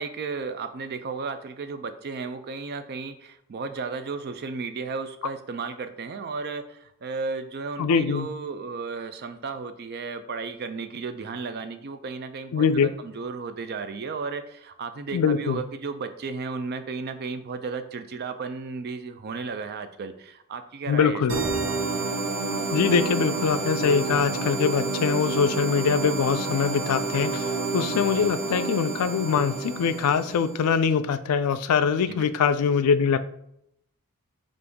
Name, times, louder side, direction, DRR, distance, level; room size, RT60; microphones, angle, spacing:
voice 1, 0.0-21.2 28.2-28.3 32.1-32.2, right 4 dB, 45° right, 9 dB, 0.4 m, -34 dB
voice 2, 7.8-8.3 12.5-12.9 15.1-15.6 20.9-21.4 22.7-33.2, left 6 dB, 85° left, 12 dB, 0.3 m, -23 dB
sound 1, 21.3-30.7, right 3 dB, 65° right, 0.8 m, -29 dB
5.3 x 2.5 x 3.4 m, 0.76 s
head